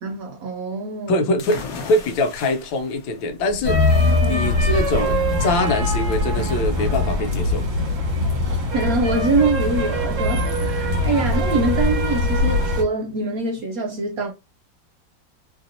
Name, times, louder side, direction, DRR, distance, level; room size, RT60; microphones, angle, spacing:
voice 1, 0.0-1.2 4.1-4.5 8.4-14.3, right 3 dB, 80° right, 0.8 m, -24 dB
voice 2, 1.1-1.6 1.9-7.6, left 2 dB, 80° left, 1.3 m, -23 dB
sound 1, 1.4-8.9, left 3 dB, 60° left, 1.1 m, -39 dB
sound 2, 3.6-12.8, left 1 dB, 55° right, 1.6 m, -21 dB
3.3 x 2.6 x 2.6 m
omnidirectional pair, 2.0 m